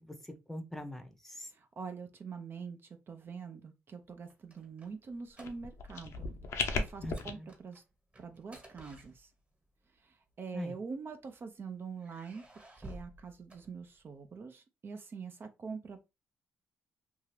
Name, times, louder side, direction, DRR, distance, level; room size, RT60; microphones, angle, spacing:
voice 1, 0.1-1.5 7.0-7.5 10.5-10.7, left 1 dB, 5° left, 0.7 m, -43 dB
voice 2, 1.4-6.3 6.7-7.8 8.2-9.3 9.9-12.4 12.7-16.0, right 5 dB, 50° right, 0.5 m, -44 dB
sound 1, 4.3-6.0 6.2-6.5 6.9-9.7 10.5-11.4 12.0-14.3, right 1 dB, 25° right, 1.2 m, -54 dB
sound 2, 5.4-7.3, left 5 dB, 70° left, 0.6 m, -36 dB
2.7 x 2.4 x 3.2 m
supercardioid pair, 60°, 5 cm